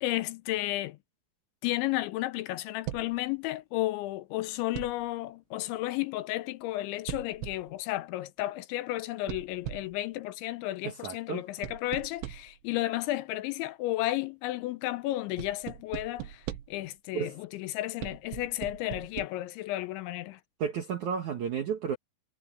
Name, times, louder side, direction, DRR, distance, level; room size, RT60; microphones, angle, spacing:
voice 1, 0.0-1.0 1.6-20.4, left 16 dB, 80° left, 3.0 m, -33 dB
sound 1, 2.9-3.2 4.7-5.2 7.1-7.8 9.3-10.1 11.6-12.6 15.4-16.9 18.0-19.3, right 14 dB, 85° right, 3.5 m, -40 dB
voice 2, 10.8-11.4 17.1-17.3 20.6-22.0, right 7 dB, 70° right, 1.9 m, -32 dB
omnidirectional pair, 5.5 m